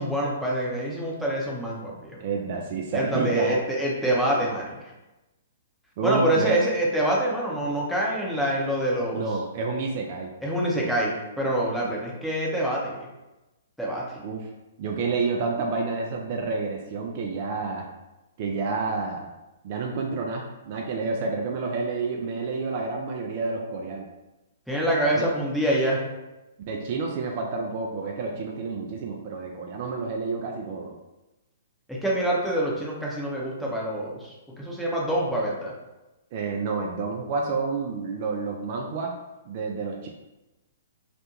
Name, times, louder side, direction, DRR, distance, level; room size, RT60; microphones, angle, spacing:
voice 1, 0.0-2.2 2.9-4.9 6.0-9.2 10.4-13.0 13.8-14.2 24.7-26.0 31.9-35.7, right 1 dB, ahead, -5 dB, 0.6 m, -26 dB
voice 2, 2.2-3.6 6.0-6.6 9.1-10.3 14.2-14.5 14.8-17.9 18.4-19.3 19.6-24.1 25.1-25.3 26.7-30.9 36.3-39.1 39.5-40.1, right 4 dB, 45° right, 1 dB, 0.3 m, -29 dB
2.4 x 2.1 x 2.9 m, 1.0 s
figure-of-eight pair, 115°, 0 cm